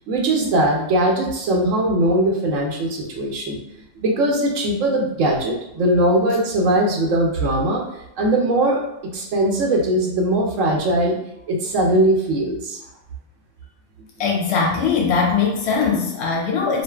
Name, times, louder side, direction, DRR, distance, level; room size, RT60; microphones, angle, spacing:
voice 1, 0.1-3.6 4.0-7.8 8.2-11.2 11.5-12.8, right 1 dB, 85° right, 0 dB, 1.0 m, -20 dB
voice 2, 14.2-16.8, left 5 dB, 65° left, -1 dB, 0.8 m, -20 dB
2.5 x 2.4 x 2.3 m, 0.83 s
omnidirectional pair, 1.3 m